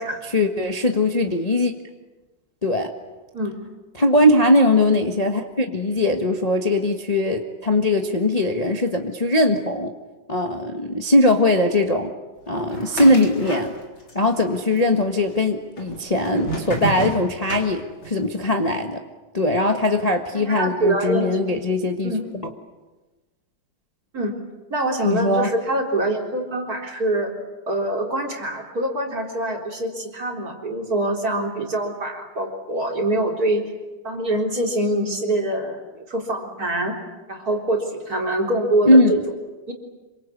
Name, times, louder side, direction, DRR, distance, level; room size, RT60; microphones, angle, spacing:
voice 1, 0.3-1.7 2.6-2.9 3.9-9.9 10.3-12.1 12.5-13.7 14.1-19.0 19.3-22.1 25.0-25.5 38.9-39.1, left 1 dB, 20° left, 3 dB, 1.3 m, -20 dB
sound 1, 12.7-14.1 14.4-15.1 15.8-18.2, equal, 65° left, 4.8 m, -30 dB
voice 2, 20.4-21.4 22.0-22.2 24.1-24.4 24.7-27.3 27.7-33.7 34.0-37.0 37.3-39.3 39.7-39.8, right 1 dB, 40° right, 1 dB, 4.3 m, -24 dB
27.0 x 24.0 x 8.5 m, 1.2 s
omnidirectional pair, 2.3 m